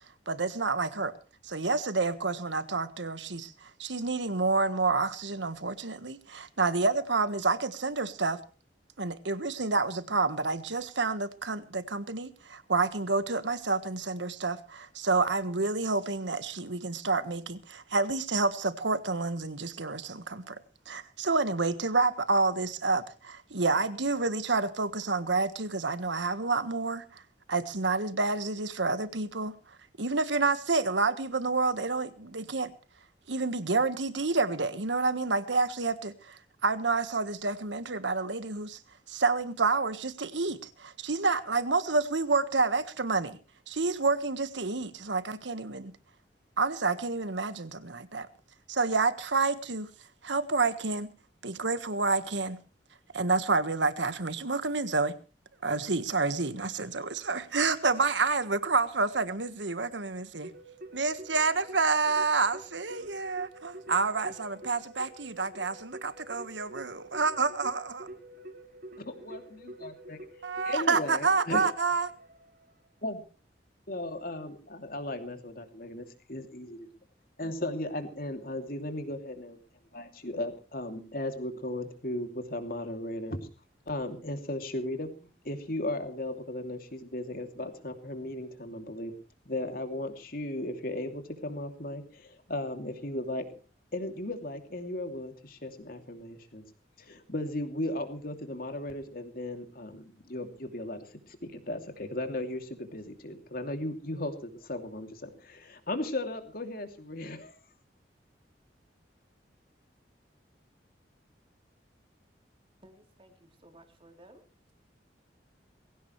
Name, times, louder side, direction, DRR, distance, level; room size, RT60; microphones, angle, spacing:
voice 1, 0.3-1.2 1.4-8.4 9.0-20.6 20.9-27.2 27.5-29.5 30.0-32.7 33.3-38.8 39.1-43.4 43.7-45.9 46.6-48.3 48.7-49.9 50.2-51.1 51.4-52.6 53.1-55.1 55.6-60.5 60.9-68.1 70.4-72.1, right 3 dB, 80° right, 1.5 m, -29 dB
Keyboard (musical), 60.4-72.9, right 1 dB, 50° right, 4.1 m, -48 dB
voice 2, 69.0-70.2 70.6-71.7 73.0-73.2 73.9-76.9 77.4-79.6 79.9-83.4 83.9-85.1 85.4-89.1 89.5-93.5 93.9-96.6 97.0-107.6, left 1 dB, 50° left, 2.8 m, -36 dB
voice 3, 112.8-114.4, right 1 dB, 30° right, 3.5 m, -56 dB
21.5 x 16.5 x 3.2 m
head